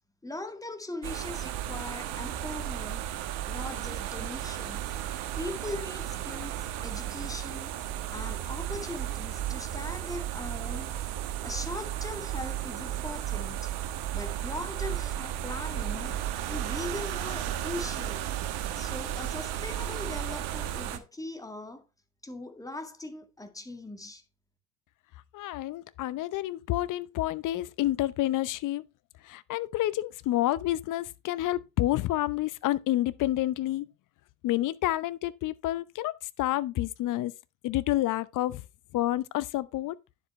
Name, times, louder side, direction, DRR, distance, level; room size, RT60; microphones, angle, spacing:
voice 1, 0.2-3.0 3.5-4.9 5.4-10.9 11.4-13.7 14.1-18.3 18.7-21.9 22.2-24.2, left 2 dB, 5° left, 1.9 m, -40 dB
sound 1, 1.0-21.0, right 12 dB, 50° right, 1.4 m, -34 dB
voice 2, 25.3-28.8 29.2-33.9 34.4-36.1 36.4-37.3 37.6-38.6 38.9-39.9, left 15 dB, 40° left, 0.8 m, -29 dB
10.0 x 7.4 x 3.2 m
hypercardioid pair, 75°, 48 cm